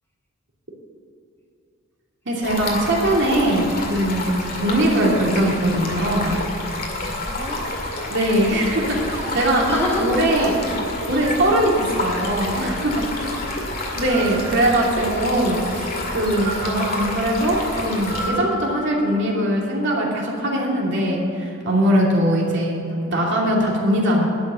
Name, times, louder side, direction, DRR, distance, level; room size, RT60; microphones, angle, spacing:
voice 1, 2.3-6.4 8.1-9.7 10.0-10.5 11.1-13.0 13.9-24.3, right 1 dB, 55° right, -3 dB, 2.7 m, -21 dB
Stream, 2.4-18.3, left 2 dB, 45° left, 2.1 m, -29 dB
voice 2, 7.3-7.9 9.7-10.8 13.3-14.3, left 1 dB, 10° left, -2 dB, 1.5 m, -29 dB
sound 1, 9.1-10.5 11.1-12.4 13.8-15.6 16.2-19.8, right 2 dB, 20° right, 1.0 m, -36 dB
11.0 x 6.6 x 9.1 m, 2.9 s
head